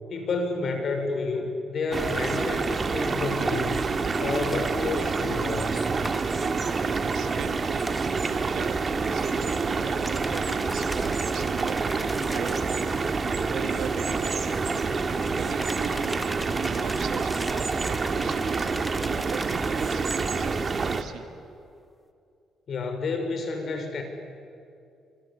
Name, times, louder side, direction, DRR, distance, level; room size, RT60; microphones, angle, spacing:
voice 1, 0.1-3.8 4.2-5.9 22.7-24.0, left 3 dB, 55° left, 5 dB, 5.8 m, -30 dB
sound 1, 1.9-21.0, right 4 dB, 35° right, 2.1 m, -27 dB
sound 2, 4.4-4.6 6.0-6.2 7.8-8.0 10.0-12.7 15.6-19.7 20.1-20.3, equal, 5° left, 1.2 m, -40 dB
voice 2, 7.0-11.9 12.2-12.7 13.5-14.7 15.2-17.5 17.8-18.7 19.1-21.3, right 8 dB, 75° right, 7 dB, 2.3 m, -39 dB
26.5 x 25.5 x 8.6 m, 2.5 s
cardioid pair, 90°, 0 cm